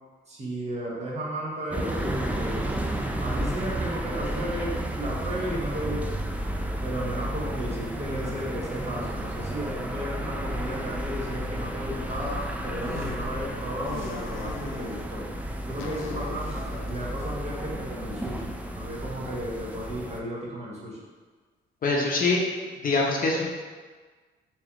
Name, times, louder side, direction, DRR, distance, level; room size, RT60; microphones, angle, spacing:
voice 1, 0.3-2.8 3.2-6.0 6.8-15.2 15.6-21.0, equal, 35° right, -5 dB, 1.1 m, -34 dB
sound 1, 1.7-20.2, right 1 dB, 5° right, 0.3 m, -32 dB
sound 2, 12.8-13.2 13.8-15.1 15.8-18.2, left 5 dB, 85° left, 0.4 m, -42 dB
voice 2, 21.8-23.5, left 3 dB, 45° left, -1 dB, 0.6 m, -24 dB
3.2 x 2.9 x 3.5 m, 1.4 s
cardioid pair, 90°, 20 cm